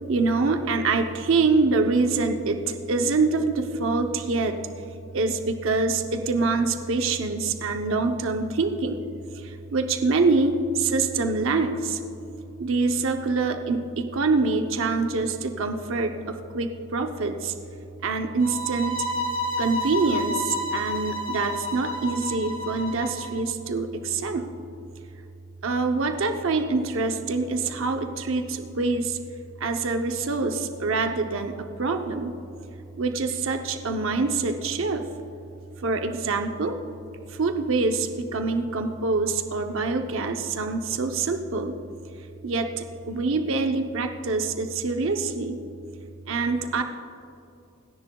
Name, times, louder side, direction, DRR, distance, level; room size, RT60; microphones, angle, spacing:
voice 1, 0.1-4.6 5.1-9.0 9.4-12.0 12.6-17.5 18.0-19.0 19.6-24.4 25.6-29.2 29.6-32.3 33.0-35.1 35.8-36.8 37.4-41.7 42.4-45.6 46.3-46.8, right 3 dB, 80° right, 5 dB, 0.7 m, -25 dB
sound 1, 18.4-23.4, left 1 dB, 70° left, 1.4 m, -30 dB
29.0 x 10.5 x 2.3 m, 2.7 s
head